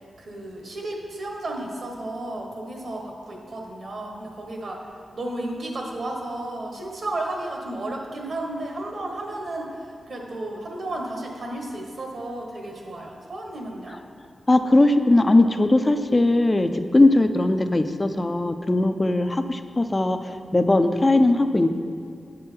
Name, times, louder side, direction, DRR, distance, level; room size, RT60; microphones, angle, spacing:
voice 1, 0.2-4.8 5.1-14.0, right 1 dB, 60° right, 1 dB, 1.3 m, -33 dB
voice 2, 14.5-21.7, left 2 dB, 25° left, 9 dB, 0.4 m, -19 dB
8.3 x 6.2 x 4.5 m, 2.4 s
wide cardioid pair, 110°, 0 cm